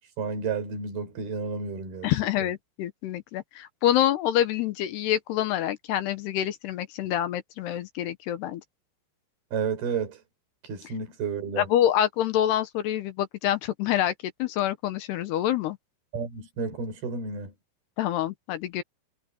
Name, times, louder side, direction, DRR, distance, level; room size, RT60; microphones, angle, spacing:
voice 1, 0.2-2.1 9.5-10.2 10.6-11.7 16.1-17.5, right 5 dB, 55° right, 6.4 m, -31 dB
voice 2, 2.0-8.6 11.6-14.1 14.4-15.8 18.0-18.8, left 12 dB, 75° left, 2.9 m, -26 dB
omnidirectional pair, 5.2 m